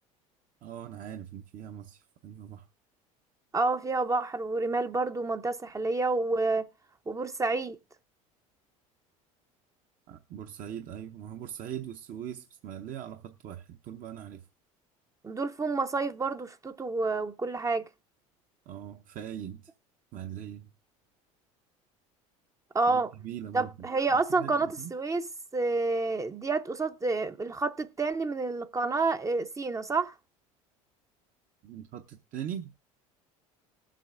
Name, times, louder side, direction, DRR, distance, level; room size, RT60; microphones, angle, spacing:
voice 1, 0.6-2.7 10.1-14.4 18.7-19.7 20.1-20.7 22.9-24.9 31.6-32.7, right 10 dB, 50° right, 0.8 m, -41 dB
voice 2, 3.5-6.7 7.1-7.8 15.2-17.8 22.7-23.1 23.5-30.1, right 3 dB, 20° right, 0.6 m, -29 dB
20.0 x 7.5 x 2.5 m
hypercardioid pair, 80°, 18 cm